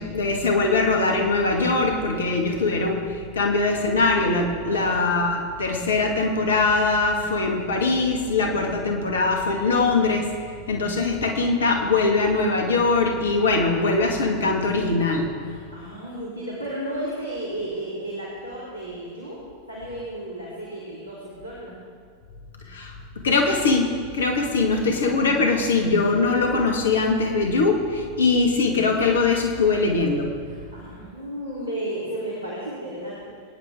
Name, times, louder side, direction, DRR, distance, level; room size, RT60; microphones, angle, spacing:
voice 1, 0.0-10.3 10.7-15.3 22.7-22.9 23.2-23.9 24.1-30.3, left 3 dB, 65° left, 2 dB, 1.9 m, -22 dB
voice 2, 4.6-5.1 15.4-19.4 19.7-21.8 24.7-25.2 30.4-33.3, right 1 dB, 85° left, -8 dB, 3.5 m, -33 dB
23.0 x 10.0 x 3.7 m, 2.1 s
figure-of-eight pair, 90°, 0 cm